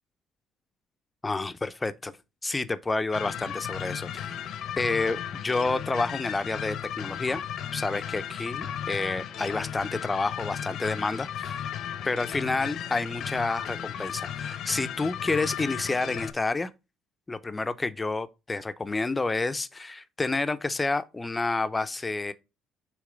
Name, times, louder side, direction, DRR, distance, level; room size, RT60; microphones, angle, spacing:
voice 1, 1.2-2.2 2.4-4.3 4.8-7.4 7.7-11.7 12.0-16.7 17.3-22.3, left 3 dB, 20° left, 0.6 m, -29 dB
sound 1, 3.1-16.3, left 9 dB, 70° left, 0.7 m, -35 dB
6.6 x 3.2 x 5.0 m
cardioid pair, 85°, 0 cm